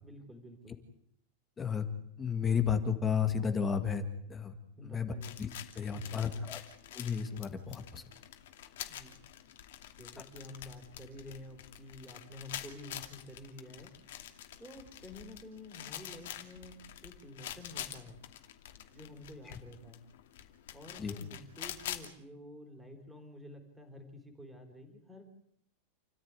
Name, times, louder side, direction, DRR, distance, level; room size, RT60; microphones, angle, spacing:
voice 1, 0.0-0.8 4.8-5.4 5.9-6.5 8.9-9.2 10.0-13.9 14.6-18.2 18.9-20.0 20.7-25.3, left 1 dB, 5° right, 5 dB, 4.0 m, -50 dB
voice 2, 2.2-4.5 4.8-5.1 5.4-5.5 5.8-6.6 6.9-8.0 21.0-21.1, left 7 dB, 15° left, 8 dB, 1.9 m, -32 dB
sound 1, 5.2-22.1, left 12 dB, 65° left, 2.6 m, -47 dB
29.0 x 14.5 x 9.7 m, 0.71 s
supercardioid pair, 170°, 0 cm